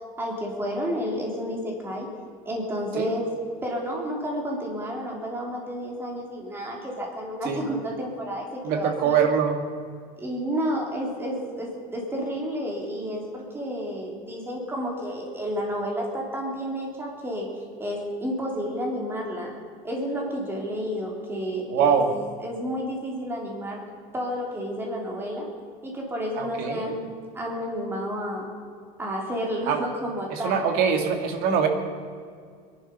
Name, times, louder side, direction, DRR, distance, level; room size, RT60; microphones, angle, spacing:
voice 1, 0.2-2.1 2.4-3.3 3.6-9.2 10.2-17.5 17.8-19.5 19.8-22.0 22.4-23.8 24.1-25.5 25.8-28.5 29.0-30.6, equal, 10° right, -1 dB, 3.3 m, -31 dB
voice 2, 8.6-9.6 21.7-22.1 26.4-26.9 29.7-29.8 30.3-31.7, right 7 dB, 55° right, 5 dB, 2.2 m, -23 dB
22.5 x 11.5 x 5.5 m, 2.1 s
cardioid pair, 160°, 18 cm